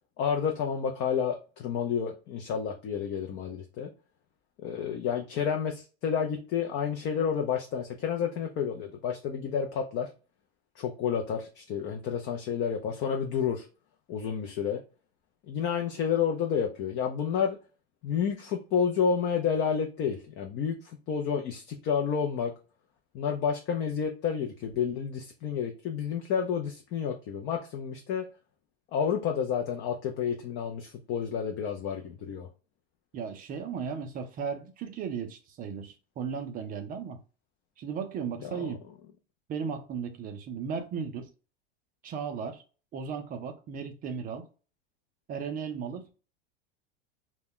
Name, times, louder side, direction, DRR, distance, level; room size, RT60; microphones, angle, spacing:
voice 1, 0.2-3.9 4.6-10.1 10.8-13.7 14.1-14.8 15.5-17.6 18.0-22.5 23.1-28.2 28.9-32.5 38.4-38.7, left 7 dB, 35° left, 0.4 m, -30 dB
voice 2, 33.1-37.2 37.8-38.8 39.5-41.3 42.0-42.6 42.9-44.5 45.3-46.1, right 6 dB, 30° right, 0.4 m, -36 dB
2.2 x 2.1 x 3.5 m
supercardioid pair, 115°, 32 cm